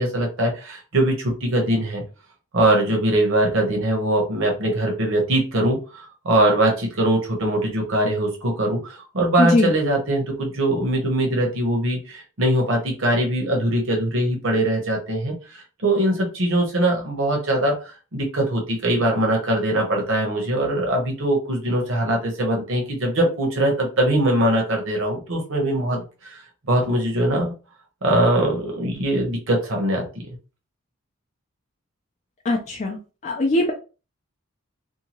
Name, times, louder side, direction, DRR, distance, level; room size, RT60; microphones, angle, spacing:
voice 1, 0.0-2.0 2.5-26.4 26.7-27.5 28.0-30.1, right 1 dB, 65° right, 0.9 m, -22 dB
voice 2, 9.4-9.7 32.5-33.0 33.2-33.7, left 2 dB, 35° left, 0.4 m, -20 dB
2.7 x 2.3 x 2.9 m
head